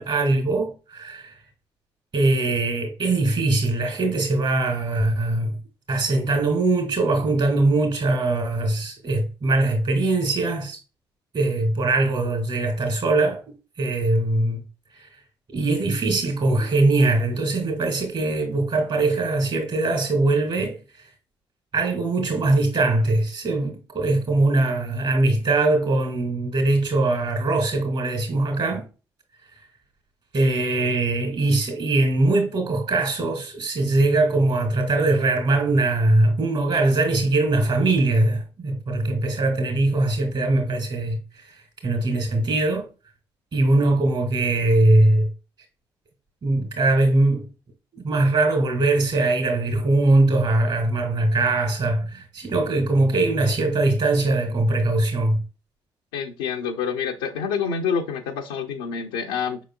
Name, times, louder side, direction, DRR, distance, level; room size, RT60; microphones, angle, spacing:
voice 1, 0.0-1.3 2.1-5.5 5.9-10.8 11.3-13.4 13.8-14.6 14.9-15.1 15.5-21.0 21.7-28.9 30.3-41.2 41.5-41.6 41.8-42.9 43.5-45.3 46.4-47.4 47.9-55.4, right 2 dB, 50° right, 2.3 m, -21 dB
voice 2, 56.1-59.6, left 6 dB, 85° left, 0.5 m, -27 dB
5.5 x 3.9 x 2.3 m
hypercardioid pair, 45°, 11 cm